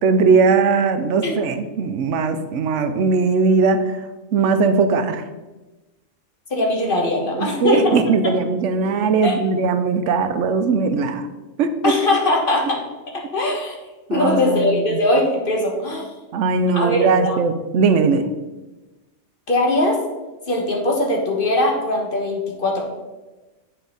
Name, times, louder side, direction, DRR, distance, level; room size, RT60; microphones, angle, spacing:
voice 1, 0.0-4.0 4.3-5.2 7.3-11.3 11.6-11.9 14.1-15.0 16.3-18.3, right 4 dB, 85° right, 9 dB, 1.0 m, -19 dB
voice 2, 6.5-8.0 9.2-9.3 11.8-12.8 13.3-13.8 14.1-16.1 16.7-17.4 19.5-20.0 20.5-22.8, left 1 dB, 50° left, 0 dB, 1.5 m, -20 dB
9.2 x 4.4 x 3.9 m, 1.1 s
omnidirectional pair, 1.2 m